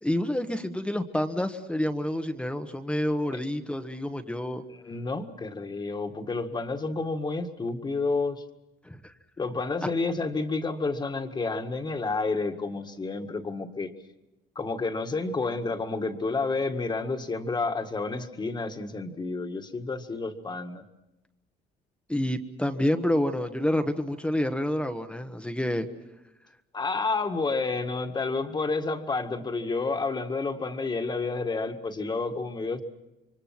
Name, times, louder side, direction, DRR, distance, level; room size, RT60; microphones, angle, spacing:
voice 1, 0.0-4.6 8.8-9.1 9.8-9.9 22.1-25.9, left 1 dB, 5° left, 7 dB, 1.2 m, -28 dB
voice 2, 4.9-8.4 9.4-13.9 14.6-20.8 26.7-32.8, left 3 dB, 25° left, 7 dB, 1.8 m, -30 dB
27.5 x 24.0 x 6.0 m, 0.97 s
cardioid pair, 110°, 17 cm